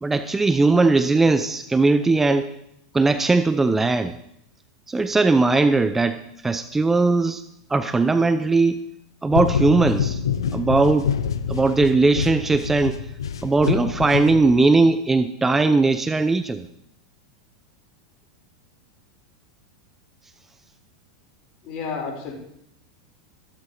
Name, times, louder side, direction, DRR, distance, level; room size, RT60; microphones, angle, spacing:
voice 1, 0.0-2.5 2.9-4.1 4.9-7.4 7.7-8.8 9.2-10.2 10.5-11.1 11.5-13.0 13.4-16.7, right 3 dB, 10° right, 12 dB, 0.6 m, -19 dB
sound 1, 9.3-14.8, left 7 dB, 70° left, 0.9 m, -26 dB
voice 2, 21.6-22.3, left 5 dB, 40° left, 0 dB, 4.9 m, -31 dB
14.5 x 13.0 x 4.3 m, 0.75 s
figure-of-eight pair, 85°, 3 cm